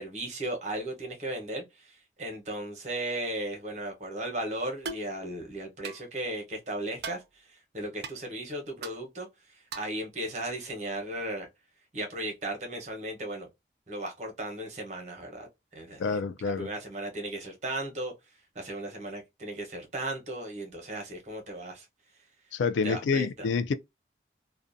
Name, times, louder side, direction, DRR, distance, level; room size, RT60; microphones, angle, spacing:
voice 1, 0.0-9.3 9.7-11.5 11.9-13.5 13.9-15.5 15.7-16.2 16.6-18.1 18.5-21.9 22.8-23.5, right 1 dB, 40° right, 0.9 m, -36 dB
sound 1, 4.8-5.1 5.8-6.0 7.0-7.2 8.0-8.1 8.8-9.0 9.7-10.0, right 4 dB, 60° right, 0.4 m, -38 dB
voice 2, 16.0-16.7 22.5-23.7, left 5 dB, 90° left, 0.3 m, -28 dB
2.5 x 2.1 x 2.5 m
head